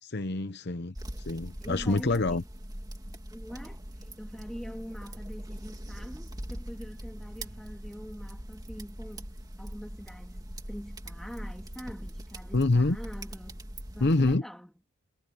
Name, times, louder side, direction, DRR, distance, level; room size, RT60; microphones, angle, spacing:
voice 1, 0.0-2.4 12.5-13.0 14.0-14.5, left 2 dB, 50° left, 0.8 m, -26 dB
sound 1, 1.0-14.4, right 1 dB, 15° right, 2.3 m, -41 dB
voice 2, 1.6-2.4 3.3-3.8 4.2-9.3 9.6-13.6 13.9-14.7, equal, ahead, 2.8 m, -44 dB
head